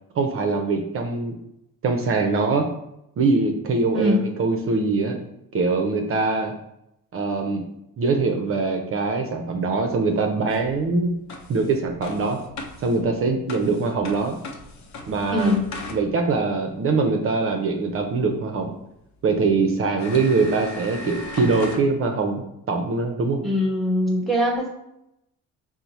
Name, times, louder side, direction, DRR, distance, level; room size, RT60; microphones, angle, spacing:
voice 1, 0.2-1.3 1.8-2.7 3.2-5.2 5.5-6.5 7.1-7.6 8.0-11.1 11.5-12.4 12.8-14.4 15.1-15.5 15.9-18.7 19.2-23.4, right 3 dB, 40° right, 4 dB, 0.6 m, -23 dB
sound 1, 10.5-16.4 18.5-18.6 19.3-19.4 20.0-21.8, left 2 dB, 55° left, 0.7 m, -38 dB
voice 2, 15.3-15.7 23.4-24.7, left 1 dB, ahead, -3 dB, 1.2 m, -22 dB
4.4 x 2.1 x 4.0 m, 0.82 s
cardioid pair, 115°, 33 cm